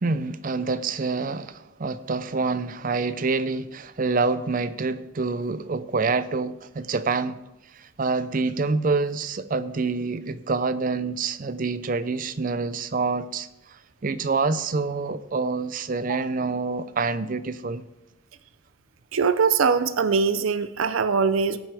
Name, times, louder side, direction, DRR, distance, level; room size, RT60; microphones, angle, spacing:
voice 1, 0.0-7.4 7.7-17.8, right 4 dB, 40° right, 0.5 m, -27 dB
voice 2, 19.1-21.6, right 5 dB, 90° right, 0.6 m, -22 dB
17.5 x 9.0 x 3.5 m
head